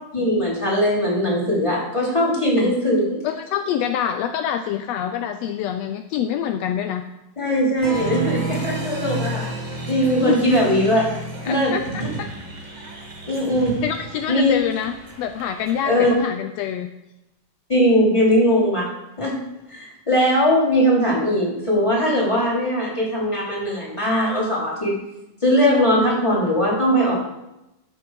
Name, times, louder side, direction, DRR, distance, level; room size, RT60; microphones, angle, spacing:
voice 1, 0.1-3.2 7.4-9.5 9.9-11.1 11.4-12.1 13.3-13.8 14.3-14.5 15.8-16.1 17.7-18.9 19.2-19.4 19.7-25.0 25.4-27.2, equal, 10° left, -5 dB, 2.9 m, -20 dB
voice 2, 3.2-7.0 10.1-10.4 11.4-11.8 12.2-12.3 13.8-16.9, left 9 dB, 85° left, 7 dB, 1.5 m, -26 dB
Applause, 7.8-16.2, right 2 dB, 75° right, 0.4 m, -31 dB
13.0 x 6.4 x 4.8 m, 0.92 s
omnidirectional pair, 3.5 m